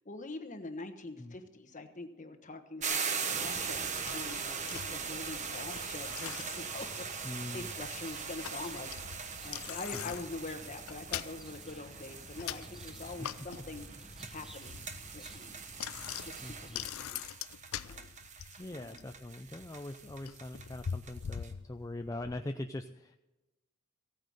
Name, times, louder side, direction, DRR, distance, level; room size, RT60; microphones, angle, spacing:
voice 1, 0.0-3.0 3.3-3.8 4.1-13.8 14.3-14.8 15.1-15.6 16.2-17.2 17.7-18.1 18.7-19.0, left 2 dB, 35° left, 7 dB, 1.3 m, -44 dB
sound 1, 2.8-21.5, right 6 dB, 35° right, 1.1 m, -41 dB
Bicycle, 3.5-22.4, left 9 dB, 85° left, 0.5 m, -45 dB
sound 2, 3.5-16.9, equal, ahead, 0.9 m, -53 dB
voice 2, 7.2-7.7 9.9-10.1 13.0-13.5 16.4-16.8 18.6-23.2, left 1 dB, 15° left, 6 dB, 0.5 m, -42 dB
16.0 x 9.3 x 6.5 m, 1.0 s
head